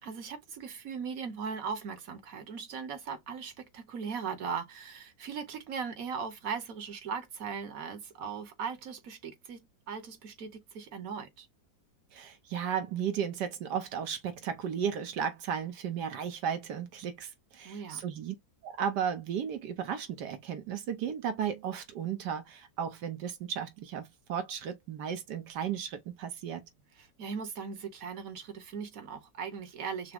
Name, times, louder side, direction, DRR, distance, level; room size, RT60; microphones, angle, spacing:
voice 1, 0.0-11.5 17.6-18.0 27.0-30.1, right 6 dB, 60° right, 1.3 m, -39 dB
voice 2, 12.1-18.3 18.6-26.7, right 8 dB, 80° right, 1.3 m, -34 dB
5.9 x 2.0 x 3.6 m
omnidirectional pair, 1.8 m